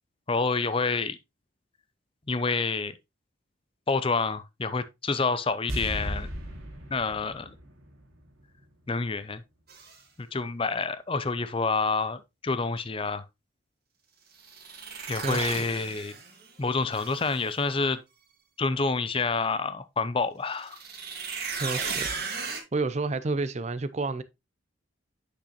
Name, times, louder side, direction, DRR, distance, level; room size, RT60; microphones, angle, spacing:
voice 1, 0.3-1.2 2.3-3.0 3.9-6.3 6.9-7.5 8.9-9.4 10.2-13.2 15.1-16.2 16.6-18.0 18.6-20.8, left 4 dB, 25° left, 0.5 m, -28 dB
sound 1, 5.7-8.9 9.1-9.2, equal, 85° right, 2.2 m, -37 dB
sound 2, 9.7-10.0 14.4-16.5 16.9-17.6 20.6-22.6, right 5 dB, 50° right, 1.9 m, -35 dB
voice 2, 15.2-15.6 21.6-22.1 22.7-24.2, right 3 dB, 35° right, 0.5 m, -30 dB
8.5 x 6.4 x 2.9 m
head